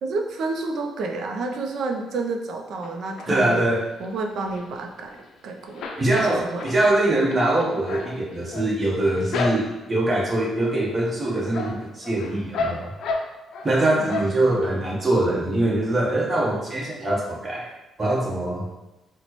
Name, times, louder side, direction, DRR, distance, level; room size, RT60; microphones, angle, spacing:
voice 1, 0.0-3.7 4.0-6.6 14.0-14.6, right 3 dB, 70° right, 3 dB, 0.5 m, -30 dB
sound 1, 2.8-3.6 4.0-5.4 5.6-10.0 10.5-10.9 11.2-13.7 14.1-14.7 15.1-15.2 15.5-15.6, left 3 dB, 75° left, 0.4 m, -32 dB
voice 2, 3.3-3.8 6.0-12.9 13.6-17.7 18.0-18.7, right 1 dB, 30° right, -3 dB, 1.0 m, -23 dB
4.1 x 2.1 x 3.0 m, 1.0 s
cardioid pair, 90°, 0 cm